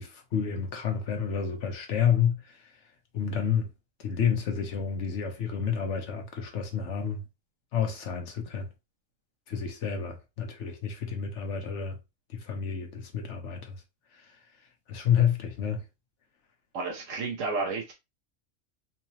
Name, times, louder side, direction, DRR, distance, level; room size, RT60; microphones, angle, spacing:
voice 1, 0.0-2.6 3.1-3.7 4.0-7.2 7.7-8.7 9.5-12.0 12.3-13.8 14.9-15.8, left 8 dB, 70° left, 1.1 m, -29 dB
voice 2, 16.7-17.9, right 3 dB, 90° right, 1.1 m, -31 dB
4.0 x 2.8 x 2.8 m
omnidirectional pair, 1.3 m